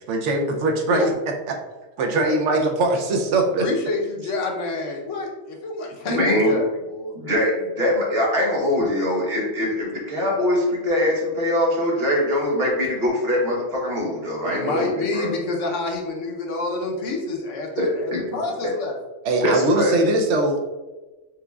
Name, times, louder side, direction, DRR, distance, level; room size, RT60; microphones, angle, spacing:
voice 1, 0.1-1.1 1.5-1.6 2.0-3.7 19.2-20.6, right 2 dB, 80° right, 3 dB, 1.0 m, -21 dB
voice 2, 3.6-7.1 14.4-18.9, left 3 dB, 90° left, 1 dB, 1.1 m, -28 dB
voice 3, 6.1-6.6 7.1-15.3 17.8-18.4 19.4-19.9, left 1 dB, 55° right, -2 dB, 1.3 m, -22 dB
4.6 x 3.7 x 2.3 m, 1.1 s
omnidirectional pair, 1.2 m